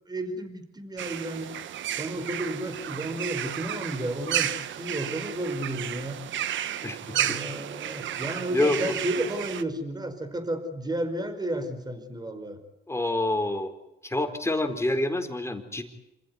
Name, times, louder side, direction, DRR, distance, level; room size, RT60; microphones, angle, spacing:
voice 1, 0.1-1.5 2.0-6.2 7.1-12.6, right 1 dB, 20° right, 9 dB, 5.0 m, -32 dB
sound 1, 1.0-9.6, right 11 dB, 70° right, 1.3 m, -32 dB
voice 2, 8.5-9.0 12.9-13.7 14.0-15.8, left 2 dB, 15° left, 6 dB, 4.3 m, -27 dB
27.5 x 15.5 x 9.5 m, 0.92 s
cardioid pair, 90°, 20 cm